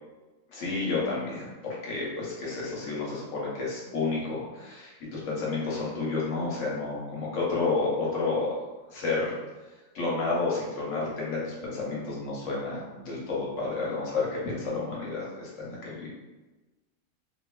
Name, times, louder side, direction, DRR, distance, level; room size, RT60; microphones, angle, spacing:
voice 1, 0.5-1.5 1.8-8.5 8.9-9.4 9.9-16.1, left 3 dB, 65° left, -5 dB, 1.0 m, -30 dB
3.2 x 2.3 x 2.2 m, 1.2 s
omnidirectional pair, 1.5 m